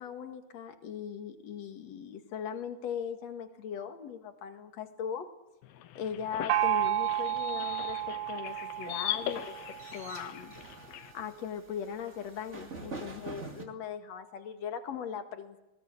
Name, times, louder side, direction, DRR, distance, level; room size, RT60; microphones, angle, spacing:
voice 1, 0.0-5.3 5.9-9.5 9.9-10.5 11.1-15.6, left 8 dB, 50° left, 6 dB, 2.5 m, -39 dB
sound 1, 5.6-11.1, left 11 dB, 75° left, 2.7 m, -40 dB
Gong, 6.5-10.0, right 12 dB, 70° right, 3.0 m, -31 dB
sound 2, 7.0-13.6, right 3 dB, 25° right, 1.7 m, -47 dB
20.5 x 19.5 x 8.4 m, 0.95 s
omnidirectional pair, 4.7 m